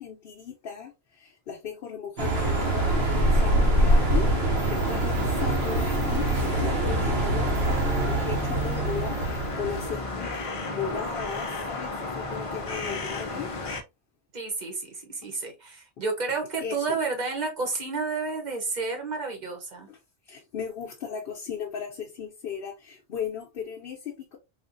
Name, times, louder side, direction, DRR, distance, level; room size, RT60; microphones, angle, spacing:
voice 1, 0.0-4.3 4.6-13.5 15.2-15.3 16.6-17.0 19.9-20.0 20.2-24.4, left 7 dB, 70° left, 0.9 m, -36 dB
sound 1, 2.2-9.9, right 1 dB, 70° right, 1.0 m, -24 dB
sound 2, 2.3-13.8, left 2 dB, 40° left, 0.5 m, -34 dB
voice 2, 14.3-19.9, right 4 dB, 45° right, 1.1 m, -31 dB
3.6 x 2.5 x 2.5 m
omnidirectional pair, 1.1 m